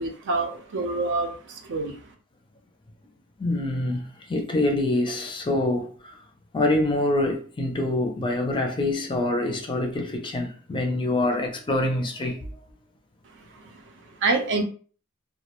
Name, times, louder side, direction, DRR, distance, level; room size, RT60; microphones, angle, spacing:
voice 1, 0.0-1.3 1.7-1.9 14.2-14.6, right 3 dB, 55° right, 0.5 m, -25 dB
voice 2, 3.4-6.2 6.5-12.5, left 2 dB, 20° left, 0.4 m, -25 dB
2.3 x 2.1 x 2.9 m
head